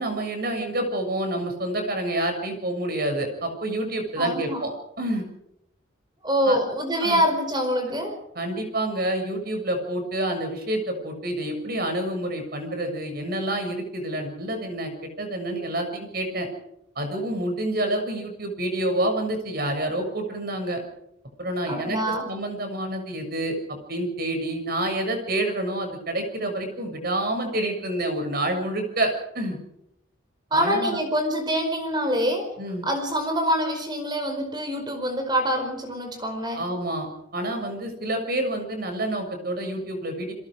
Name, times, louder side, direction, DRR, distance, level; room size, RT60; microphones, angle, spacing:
voice 1, 0.0-4.7 5.0-5.3 6.5-6.6 7.0-7.2 8.3-16.5 16.9-20.8 21.4-22.0 22.2-23.6 23.9-29.6 30.5-31.0 32.6-32.9 36.5-40.3, right 1 dB, 50° right, 5 dB, 6.8 m, -28 dB
voice 2, 4.2-4.6 6.2-8.2 21.7-22.3 30.5-32.5 32.8-36.7, equal, 20° right, 5 dB, 4.8 m, -25 dB
29.5 x 22.5 x 5.0 m, 0.79 s
head